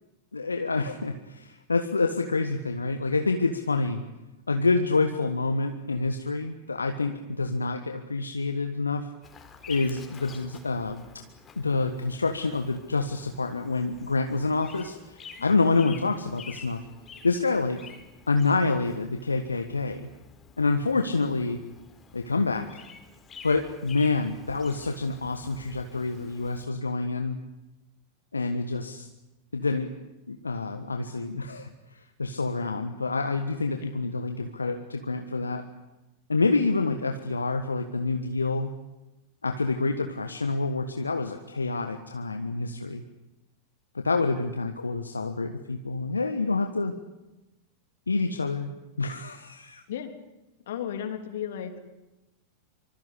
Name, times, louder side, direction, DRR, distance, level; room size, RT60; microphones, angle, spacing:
voice 1, 0.3-4.0 4.5-9.1 9.7-11.2 11.6-16.8 17.2-17.8 18.3-20.1 20.6-21.6 22.1-22.8 23.4-27.4 28.3-29.1 29.5-35.7 36.3-38.7 39.4-43.0 43.9-46.9 48.1-48.7 49.0-49.8, left 3 dB, 80° left, 7 dB, 1.5 m, -27 dB
Bird vocalization bird call bird song, 9.2-26.7, left 5 dB, 20° left, 4.3 m, -49 dB
voice 2, 50.7-51.8, left 9 dB, 60° left, 8 dB, 3.3 m, -34 dB
25.0 x 25.0 x 8.4 m, 1.0 s
figure-of-eight pair, 90°, 0 cm